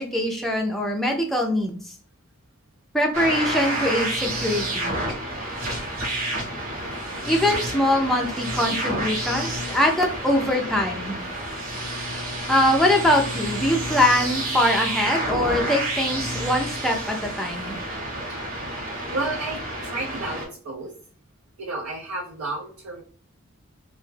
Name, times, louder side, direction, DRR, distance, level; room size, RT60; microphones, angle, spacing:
voice 1, 0.0-1.8 2.9-5.0 7.3-11.2 12.5-17.8, left 1 dB, ahead, 0 dB, 0.3 m, -23 dB
sound 1, 3.1-20.5, right 1 dB, 60° right, 0.9 m, -29 dB
voice 2, 19.1-20.9 21.6-23.0, right 2 dB, 90° right, -2 dB, 0.6 m, -31 dB
2.2 x 2.1 x 3.1 m, 0.44 s
head